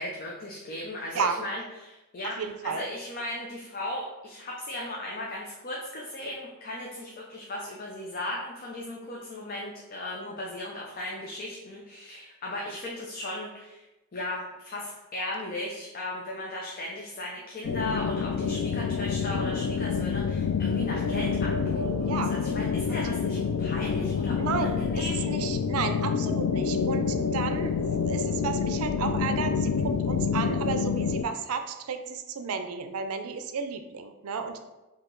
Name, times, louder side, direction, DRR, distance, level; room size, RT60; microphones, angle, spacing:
voice 1, 0.0-13.8 14.1-25.2, left 1 dB, 40° left, -2 dB, 0.5 m, -37 dB
voice 2, 2.4-2.8 22.1-22.3 22.9-23.0 24.4-27.7 28.0-34.6, right 5 dB, 85° right, 8 dB, 0.4 m, -32 dB
sound 1, 17.6-31.2, left 6 dB, 90° left, 0.3 m, -27 dB
4.7 x 2.8 x 3.8 m, 1.0 s
head